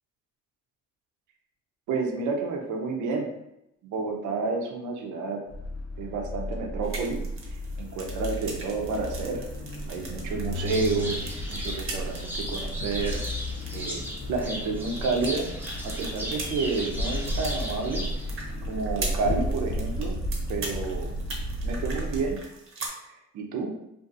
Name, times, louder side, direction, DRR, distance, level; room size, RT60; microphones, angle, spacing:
voice 1, 1.9-3.3 3.8-5.4 6.0-7.2 7.8-9.4 9.9-11.2 11.5-13.2 13.7-14.0 14.3-15.5 15.8-18.0 18.7-20.2 20.5-21.1 21.6-22.4 23.0-23.7, right 4 dB, 75° right, 2 dB, 0.6 m, -30 dB
sound 1, 5.5-22.3, equal, 55° left, 0.5 m, -33 dB
sound 2, 6.8-22.9, right 3 dB, 45° right, 0.7 m, -42 dB
sound 3, 10.7-18.4, equal, 5° right, 0.6 m, -37 dB
2.6 x 2.5 x 2.4 m, 0.84 s
cardioid pair, 90°, 30 cm